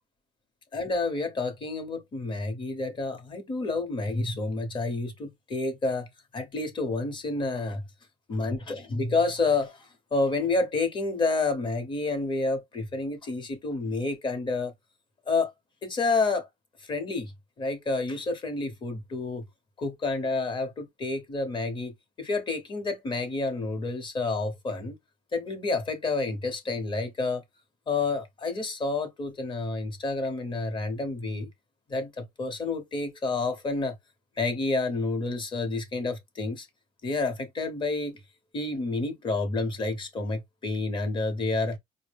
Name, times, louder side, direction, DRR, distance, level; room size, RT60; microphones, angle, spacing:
voice 1, 0.7-7.8 8.3-14.7 15.3-15.5 15.8-16.5 16.9-17.3 17.6-19.4 19.8-25.0 25.3-27.4 27.9-31.5 31.9-34.0 34.4-36.7 37.0-38.2 38.5-41.8, left 3 dB, 25° left, 0.9 m, -29 dB
4.9 x 2.1 x 3.3 m
cardioid pair, 155°, 18 cm